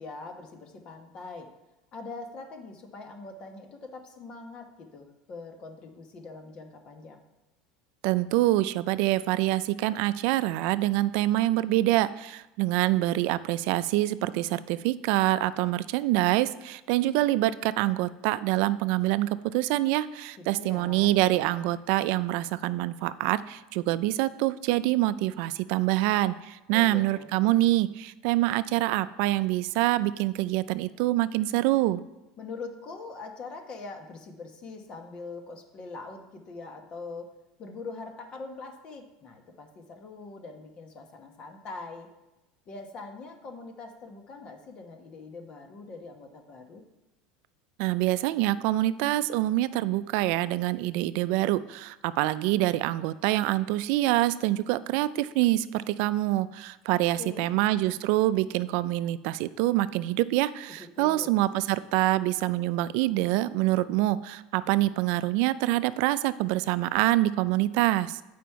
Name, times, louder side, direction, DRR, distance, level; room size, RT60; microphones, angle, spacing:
voice 1, 0.0-1.5 1.9-7.2 20.4-21.1 26.7-27.3 32.4-37.3 37.6-42.1 42.7-46.8 57.2-57.5 60.8-61.4, left 3 dB, 35° left, 5 dB, 1.1 m, -43 dB
voice 2, 8.0-32.0 47.8-68.2, right 16 dB, 65° right, 15 dB, 0.3 m, -26 dB
8.5 x 5.1 x 4.6 m, 0.98 s
supercardioid pair, 135°, 3 cm